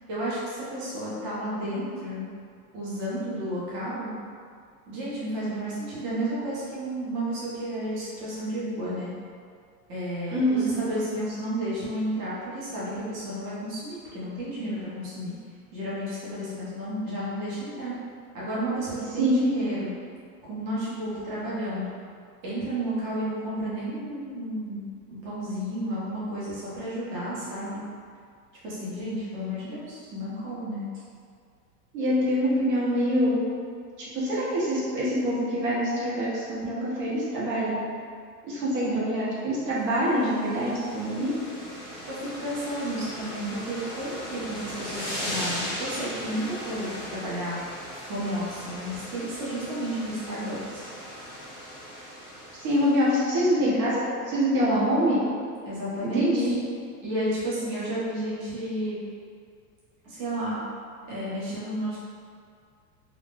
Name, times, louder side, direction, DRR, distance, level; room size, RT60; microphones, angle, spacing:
voice 1, 0.1-2.3 2.7-4.1 4.9-9.1 9.9-15.4 15.7-17.9 18.3-19.9 20.5-21.9 22.4-24.8 25.1-27.8 28.6-30.9 42.1-47.6 48.1-50.9 55.6-56.5 57.0-59.0 60.0-60.6 61.1-62.0, right 1 dB, 35° right, -9 dB, 0.7 m, -32 dB
voice 2, 10.3-10.7 19.2-19.4 31.9-33.4 34.1-37.8 38.4-41.4 52.6-55.2 56.0-56.5, equal, 80° right, -8 dB, 1.2 m, -25 dB
sound 1, 40.0-53.2, equal, ahead, 0.5 m, -38 dB
2.5 x 2.1 x 3.4 m, 2.2 s
supercardioid pair, 145°, 48 cm